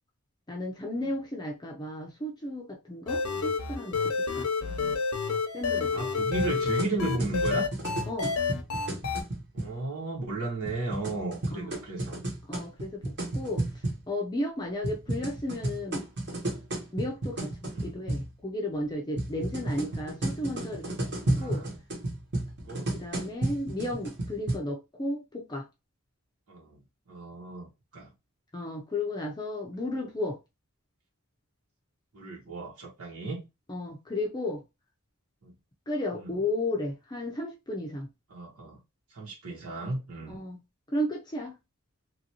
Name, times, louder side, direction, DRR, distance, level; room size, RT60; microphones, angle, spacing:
voice 1, 0.5-4.5 5.5-6.0 8.1-8.3 11.5-11.8 12.5-16.1 16.9-21.0 21.4-21.6 22.9-25.7 28.5-30.4 33.7-34.6 35.9-38.1 40.3-40.6 40.9-41.5, left 1 dB, 20° left, 0.5 m, -34 dB
sound 1, 3.1-9.2, left 5 dB, 75° left, 0.7 m, -29 dB
voice 2, 4.6-5.0 5.9-7.7 9.6-12.2 17.7-18.0 21.3-21.7 22.7-23.0 26.5-26.8 27.1-27.7 27.9-28.1 32.1-33.4 35.4-35.5 36.2-36.3 38.3-38.8 39.1-40.4, right 2 dB, 85° right, 1.3 m, -35 dB
sound 2, 6.4-9.7 10.7-14.0 14.8-18.3 19.2-24.6, right 1 dB, 50° right, 1.1 m, -33 dB
3.0 x 2.6 x 2.8 m
head